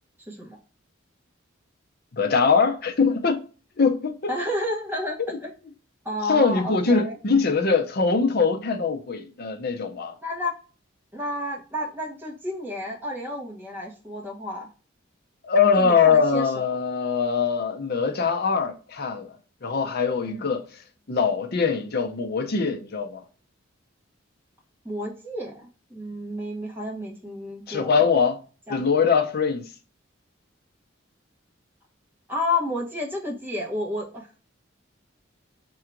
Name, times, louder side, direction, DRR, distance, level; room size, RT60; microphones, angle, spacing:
voice 1, 0.3-0.6 4.3-5.5 6.0-7.1 10.2-10.5 11.1-14.7 15.8-16.8 20.2-20.5 24.8-28.1 28.7-28.8 32.3-34.3, left 1 dB, 10° right, 1.0 m, -31 dB
voice 2, 2.1-3.5 3.8-4.3 6.3-10.1 15.4-19.4 19.6-20.7 21.1-23.2 27.7-28.4 28.7-29.7, left 5 dB, 50° left, 0.6 m, -22 dB
3.7 x 2.3 x 4.5 m
head